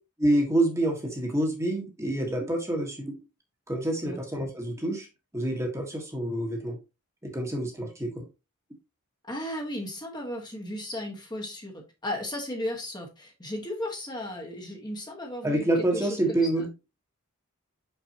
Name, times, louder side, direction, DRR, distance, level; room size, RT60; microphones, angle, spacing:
voice 1, 0.2-3.1 3.7-5.1 5.3-6.8 7.2-8.2 15.4-16.7, right 1 dB, 15° right, 1.5 m, -27 dB
voice 2, 9.3-15.7 15.9-16.2 16.6-16.7, left 1 dB, 20° left, 1.4 m, -35 dB
5.9 x 5.8 x 2.9 m
head